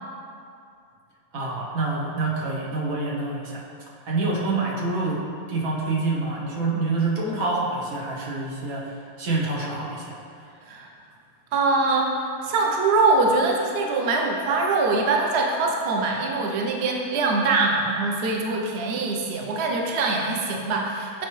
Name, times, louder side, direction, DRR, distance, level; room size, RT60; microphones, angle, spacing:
voice 1, 1.3-3.6 4.0-5.2 5.5-8.9 9.2-10.1, right 3 dB, 80° right, -4 dB, 1.5 m, -26 dB
voice 2, 11.5-12.1 12.4-21.3, right 3 dB, 60° right, 0 dB, 0.8 m, -23 dB
8.3 x 4.4 x 3.2 m, 2.4 s
omnidirectional pair, 1.4 m